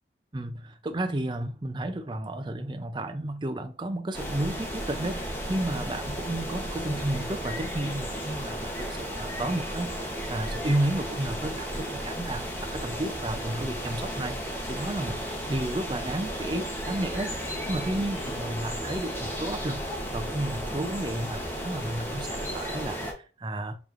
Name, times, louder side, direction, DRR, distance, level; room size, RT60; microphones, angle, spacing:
voice 1, 0.3-15.2 15.5-23.8, right 1 dB, 25° right, 0.5 m, -32 dB
sound 1, 4.1-23.1, equal, 10° left, 0.9 m, -34 dB
6.8 x 3.0 x 2.5 m
head